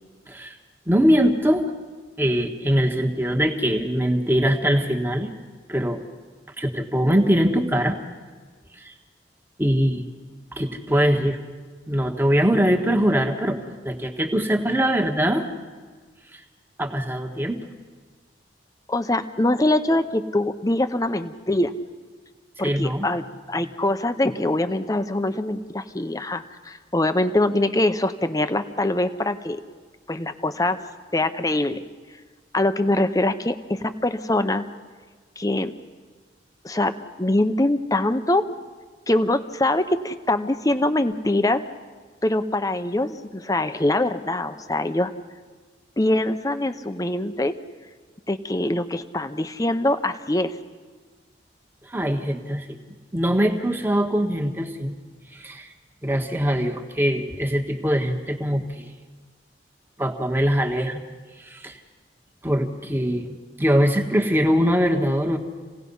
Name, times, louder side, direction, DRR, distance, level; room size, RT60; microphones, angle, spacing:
voice 1, 0.9-1.7 2.2-5.3 5.7-6.0 6.6-8.0 8.8-8.9 9.6-10.0 10.5-11.4 11.9-15.5 16.3-16.4 16.8-17.6 22.6-23.1 51.8-52.8 53.1-54.9 55.3-55.7 56.0-58.9 60.0-61.0 61.4-61.8 62.4-65.4, equal, 10° right, 2 dB, 1.5 m, -22 dB
voice 2, 18.9-21.7 22.6-29.6 30.1-30.8 31.1-31.8 32.5-34.7 35.4-35.7 36.6-38.5 39.1-41.6 42.2-45.1 46.0-47.6 48.3-50.6, left 1 dB, 20° left, 9 dB, 0.8 m, -23 dB
28.0 x 18.0 x 5.5 m, 1.4 s
head